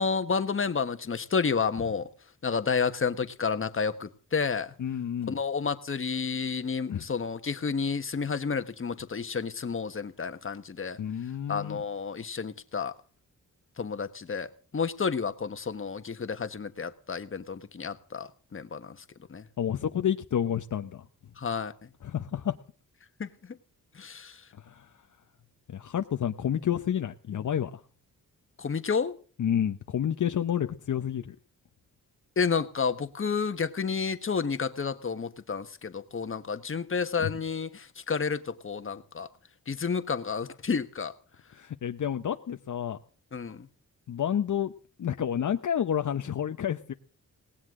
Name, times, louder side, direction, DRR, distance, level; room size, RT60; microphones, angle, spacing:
voice 1, 0.0-2.1 2.4-4.7 5.3-11.0 11.5-12.9 13.8-18.9 19.3-19.4 21.4-21.7 23.2-23.6 23.9-24.4 28.6-29.2 32.4-39.3 39.7-41.1 43.3-43.7, left 5 dB, 40° left, 9 dB, 1.4 m, -30 dB
voice 2, 4.8-5.4 6.9-7.0 11.0-11.8 19.6-21.0 22.0-22.6 24.6-24.9 25.7-27.8 29.4-31.4 37.2-37.3 41.5-43.0 44.1-44.7 45.0-46.9, left 9 dB, 60° left, 7 dB, 0.9 m, -29 dB
18.5 x 17.5 x 3.8 m, 0.41 s
wide cardioid pair, 110°, 34 cm